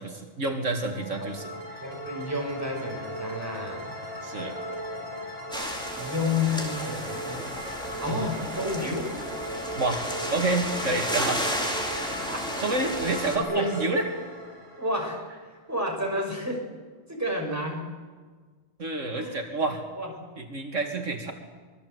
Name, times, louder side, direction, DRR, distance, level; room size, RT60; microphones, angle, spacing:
voice 1, 0.0-1.5 4.2-4.6 8.1-8.3 9.8-10.1 10.3-11.4 12.6-14.1 18.8-19.8 20.4-21.3, right 2 dB, 75° right, 3 dB, 2.4 m, -28 dB
sound 1, 0.7-15.6, equal, 30° right, 6.9 m, -37 dB
voice 2, 1.8-3.9 6.0-7.5 8.0-9.1 12.0-12.6 12.9-13.7 14.8-15.3 15.7-16.7 17.1-18.0 19.1-19.5 19.9-20.1, left 2 dB, 10° right, 0 dB, 5.9 m, -31 dB
sound 2, 5.5-13.4, equal, 5° left, 3.9 m, -33 dB
25.0 x 22.0 x 8.0 m, 1.4 s
omnidirectional pair, 1.3 m